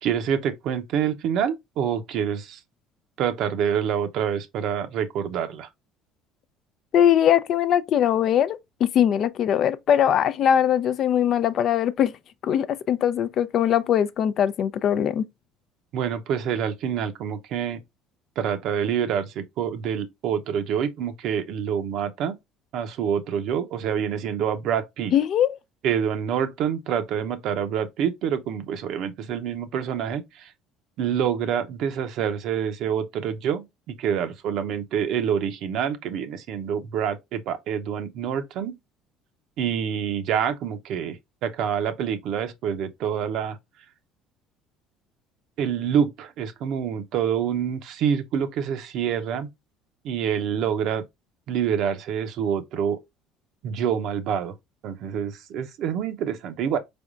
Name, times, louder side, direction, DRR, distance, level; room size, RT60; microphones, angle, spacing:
voice 1, 0.0-2.6 3.2-5.7 15.9-17.8 18.4-22.4 22.7-25.1 25.8-30.5 31.0-38.8 39.6-43.6 45.6-49.5 50.0-51.0 51.5-53.0 53.6-54.5 54.8-56.8, right 8 dB, 65° right, 0.7 m, -27 dB
voice 2, 6.9-12.2 12.4-15.3 25.1-25.6, left 9 dB, 55° left, 0.4 m, -21 dB
4.4 x 3.5 x 2.4 m
cardioid pair, 105°, 0 cm